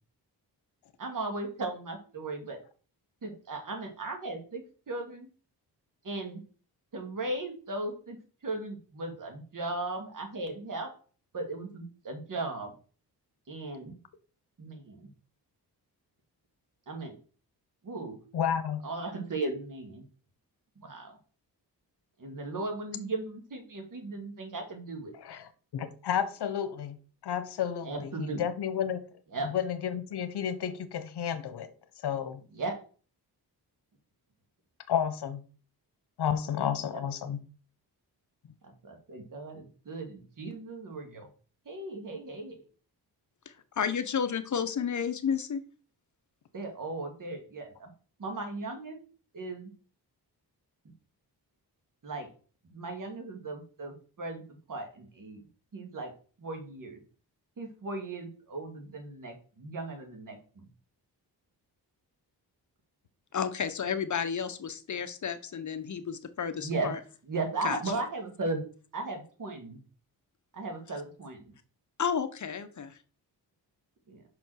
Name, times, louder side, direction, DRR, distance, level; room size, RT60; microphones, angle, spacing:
voice 1, 1.0-2.6 3.2-5.3 6.0-6.4 6.9-8.2 8.4-10.9 11.3-12.7 13.5-13.9 14.6-15.1 16.9-17.1 17.8-18.2 18.8-20.0 20.8-21.1 22.2-25.1 27.8-28.4 29.3-29.5 32.5-32.8 38.6-41.3 41.7-42.6 46.5-47.9 48.2-49.0 49.3-49.7 52.0-52.3 52.7-54.4 54.7-55.4 55.7-56.1 56.4-57.0 57.6-60.6 66.6-67.0 67.3-68.6 68.9-69.8 70.5-71.4 74.1-74.2, right 2 dB, 55° right, 2.4 m, -37 dB
voice 2, 18.3-18.8 25.2-27.0 27.2-29.1 29.4-31.7 32.0-32.4 34.9-35.4 36.2-37.4, left 8 dB, 80° left, 1.0 m, -31 dB
voice 3, 43.8-45.6 63.3-67.0 67.6-68.0 72.0-73.0, left 7 dB, 50° left, 0.9 m, -32 dB
5.7 x 5.2 x 6.3 m
wide cardioid pair, 115°, 39 cm